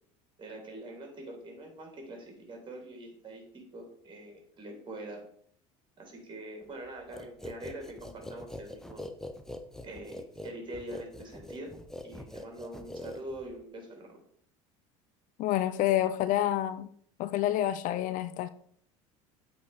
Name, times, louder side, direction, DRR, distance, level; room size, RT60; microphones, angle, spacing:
voice 1, 0.4-5.3 6.0-9.1 9.8-11.8 12.0-14.2, right 1 dB, 30° right, 3.2 m, -44 dB
sound 1, 7.1-13.6, left 1 dB, 5° left, 0.8 m, -43 dB
voice 2, 15.4-16.9 17.2-18.5, left 12 dB, 55° left, 0.5 m, -28 dB
8.3 x 4.2 x 4.8 m
hypercardioid pair, 85°, 16 cm